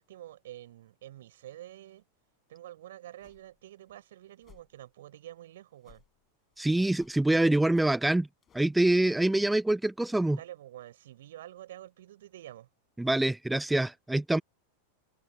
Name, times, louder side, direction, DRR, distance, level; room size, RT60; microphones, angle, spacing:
voice 1, 0.0-2.0 2.5-6.0 9.0-9.1 10.2-12.7, right 13 dB, 60° right, 4.6 m, -48 dB
sound 1, 3.2-3.6 3.9-4.0 4.4-4.7 5.8-6.2 6.5-7.2 7.7-7.9 8.4-8.6, left 8 dB, 25° left, 5.7 m, -60 dB
voice 2, 6.6-8.3 8.5-10.4 13.0-14.4, right 1 dB, 5° right, 0.9 m, -25 dB
open air
figure-of-eight pair, 90°, 0 cm